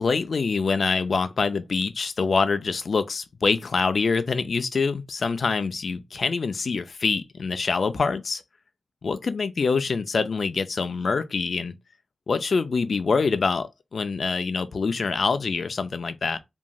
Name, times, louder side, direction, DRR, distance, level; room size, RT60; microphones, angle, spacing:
voice 1, 0.0-8.4 9.0-11.7 12.3-16.4, left 4 dB, 75° left, 0.3 m, -25 dB
2.9 x 2.6 x 2.2 m
wide cardioid pair, 70°, 0 cm